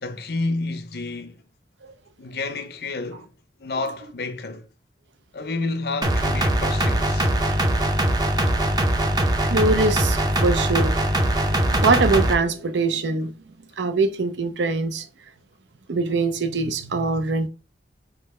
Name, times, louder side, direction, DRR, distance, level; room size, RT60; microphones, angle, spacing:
voice 1, 0.0-1.4 2.2-3.3 3.6-4.7 5.3-7.3, left 3 dB, 60° left, 0.6 m, -30 dB
sound 1, 6.0-12.3, right 1 dB, 25° right, 0.5 m, -21 dB
voice 2, 9.4-11.0 11.4-13.3 13.8-15.1 15.9-17.5, right 3 dB, 85° right, 0.6 m, -23 dB
3.8 x 3.3 x 4.2 m
head